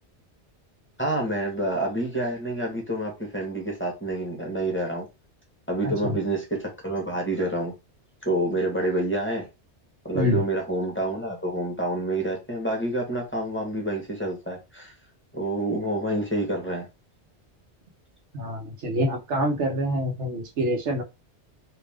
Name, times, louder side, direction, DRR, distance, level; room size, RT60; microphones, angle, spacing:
voice 1, 1.0-5.1 5.7-7.7 8.2-9.4 10.0-14.9 15.3-16.9, right 1 dB, 10° left, 0 dB, 1.2 m, -28 dB
voice 2, 5.8-6.1 10.1-10.4 18.3-21.0, equal, 85° right, 2 dB, 1.3 m, -26 dB
3.4 x 2.9 x 3.5 m, 0.25 s
omnidirectional pair, 1.2 m